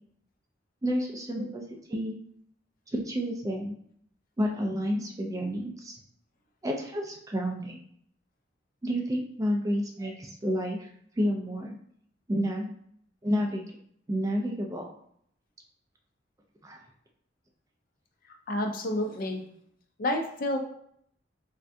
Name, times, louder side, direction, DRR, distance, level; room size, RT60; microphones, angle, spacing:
voice 1, 0.8-1.6 1.9-2.2 2.9-3.8 4.4-6.0 6.6-7.8 8.8-10.9 11.2-11.7 12.3-12.7 13.2-13.6 14.1-14.9 16.6-16.8, equal, 20° right, 1 dB, 0.3 m, -30 dB
voice 2, 18.5-19.5 20.0-20.6, left 1 dB, 50° left, 3 dB, 0.4 m, -29 dB
3.4 x 2.2 x 2.6 m, 0.66 s
head